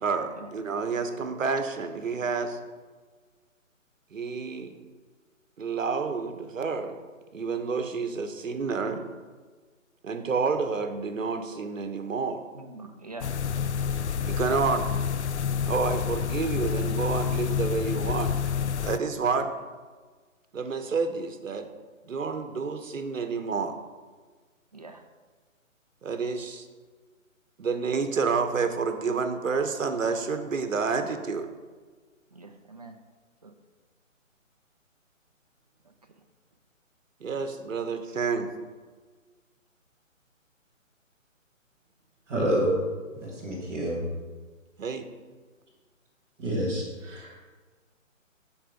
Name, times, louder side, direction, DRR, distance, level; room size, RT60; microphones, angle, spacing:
voice 1, 0.0-2.6 4.1-4.7 5.6-6.9 7.3-9.0 10.0-12.4 14.3-14.9 15.7-18.4 18.8-19.5 20.5-21.6 22.0-23.7 26.0-26.7 27.6-31.5 37.2-38.5 44.8-45.0, right 5 dB, 70° right, 8 dB, 1.1 m, -29 dB
voice 2, 12.5-13.3 24.7-25.0 32.3-33.0 33.4-33.5, right 3 dB, 30° right, 5 dB, 0.5 m, -44 dB
sound 1, 13.2-19.0, left 7 dB, 60° left, 0.5 m, -28 dB
voice 3, 42.3-42.8 43.1-44.1 46.4-47.4, right 1 dB, 5° right, -9 dB, 0.8 m, -28 dB
10.0 x 4.8 x 5.2 m, 1.4 s
hypercardioid pair, 160°, 40 cm